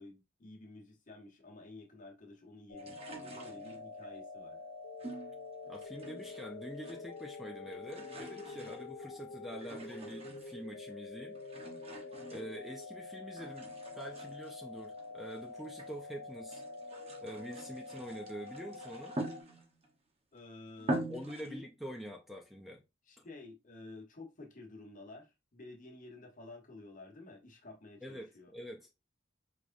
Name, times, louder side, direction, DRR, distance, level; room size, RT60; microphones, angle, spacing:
voice 1, 0.0-4.6 20.3-21.1 21.4-21.7 23.1-28.5, left 2 dB, 40° left, 1.1 m, -51 dB
sound 1, 2.7-19.4, left 3 dB, 65° left, 0.7 m, -47 dB
sound 2, 2.8-4.1 5.0-6.5 6.7-7.3 7.6-10.7 11.4-13.0 13.4-16.0 16.4-19.9 20.4-20.5 20.8-21.5, right 1 dB, 30° right, 0.9 m, -44 dB
voice 2, 5.7-11.4 12.3-16.6 17.2-19.2 21.1-22.8 23.2-23.3 28.0-28.9, equal, ahead, 0.5 m, -46 dB
4.8 x 3.0 x 2.6 m
head